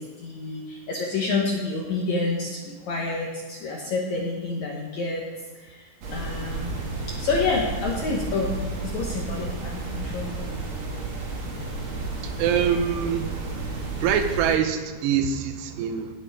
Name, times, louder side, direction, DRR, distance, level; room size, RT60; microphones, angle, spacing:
voice 1, 0.0-5.3 5.5-6.7 7.1-10.4, left 3 dB, 65° left, -2 dB, 1.9 m, -28 dB
sound 1, 6.0-14.6, right 3 dB, 45° right, 1.8 m, -32 dB
voice 2, 12.4-13.4 14.0-16.1, right 8 dB, 80° right, 7 dB, 3.0 m, -24 dB
18.0 x 8.6 x 3.6 m, 1.3 s
omnidirectional pair, 4.8 m